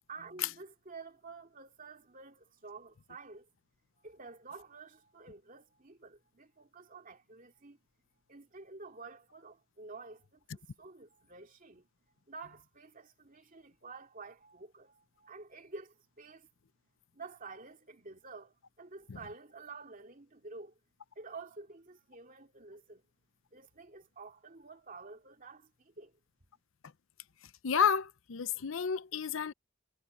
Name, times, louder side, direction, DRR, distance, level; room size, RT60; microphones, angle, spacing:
voice 1, 0.1-3.5 4.0-7.8 8.3-11.9 12.3-16.5 17.1-20.8 21.2-23.0 23.5-26.2, right 4 dB, 40° right, 2.6 m, -50 dB
voice 2, 27.6-29.5, left 7 dB, 65° left, 0.6 m, -30 dB
head